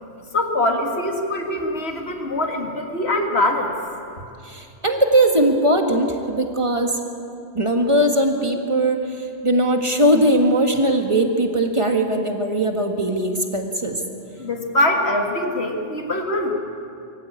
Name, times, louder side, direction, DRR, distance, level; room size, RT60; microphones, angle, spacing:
voice 1, 0.3-3.8 14.4-16.5, left 1 dB, 80° left, 3 dB, 2.3 m, -23 dB
voice 2, 4.4-6.9 7.5-14.0, right 1 dB, 30° right, 3 dB, 1.7 m, -20 dB
23.5 x 15.0 x 8.6 m, 2.6 s
omnidirectional pair, 1.1 m